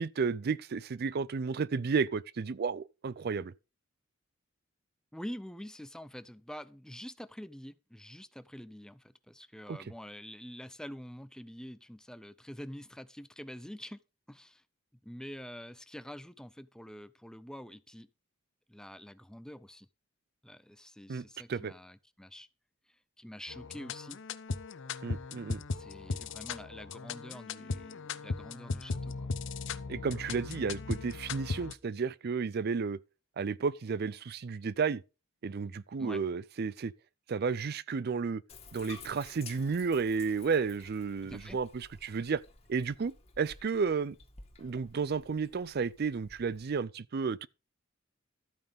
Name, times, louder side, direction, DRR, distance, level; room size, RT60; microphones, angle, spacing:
voice 1, 0.0-3.5 9.7-9.8 21.1-21.2 21.5-21.7 25.0-25.6 29.9-33.0 33.4-35.0 35.4-36.9 37.3-38.4 38.7-42.4 42.7-44.2 44.6-47.5, right 5 dB, 50° right, 0.4 m, -32 dB
voice 2, 5.1-14.0 14.3-14.6 15.0-18.1 18.7-19.9 20.4-22.5 23.2-24.2 25.7-29.3 36.0-36.2 41.2-41.6, equal, 5° left, 0.6 m, -46 dB
sound 1, 23.5-31.7, left 4 dB, 65° left, 0.8 m, -38 dB
Bathtub (filling or washing), 38.5-46.8, left 4 dB, 30° left, 2.2 m, -53 dB
13.0 x 9.1 x 3.5 m
head